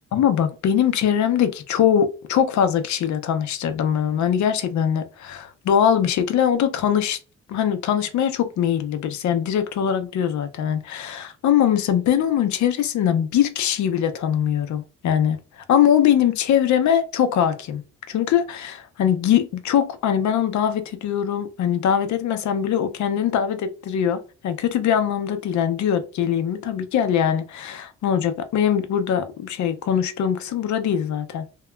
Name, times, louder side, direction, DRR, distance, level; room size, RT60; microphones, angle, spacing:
voice 1, 0.1-7.2 7.5-15.4 15.7-17.8 18.1-31.4, left 9 dB, 75° left, 0.6 m, -22 dB
2.8 x 2.2 x 2.2 m
cardioid pair, 105°, 29 cm